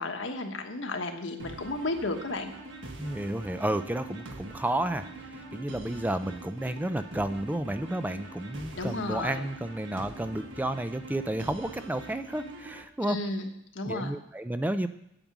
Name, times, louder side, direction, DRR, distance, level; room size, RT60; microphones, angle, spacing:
voice 1, 0.0-2.5 8.7-9.4 13.0-13.5 13.7-14.1, left 2 dB, 75° left, 4 dB, 1.3 m, -33 dB
sound 1, 1.4-12.8, right 2 dB, 70° right, 1.5 m, -44 dB
voice 2, 3.0-13.2 13.9-14.9, right 1 dB, 10° right, 10 dB, 0.4 m, -31 dB
9.0 x 8.7 x 6.0 m, 0.79 s
head